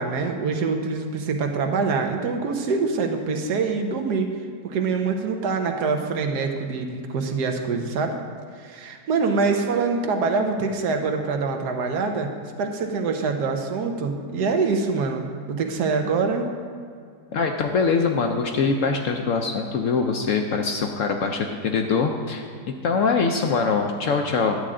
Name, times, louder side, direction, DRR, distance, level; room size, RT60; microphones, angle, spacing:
voice 1, 0.0-4.3 4.6-8.2 8.5-12.3 12.6-16.5, right 4 dB, 75° right, 4 dB, 1.4 m, -25 dB
voice 2, 17.3-24.6, left 4 dB, 65° left, 4 dB, 0.8 m, -23 dB
11.0 x 8.7 x 3.7 m, 2.2 s
omnidirectional pair, 1.8 m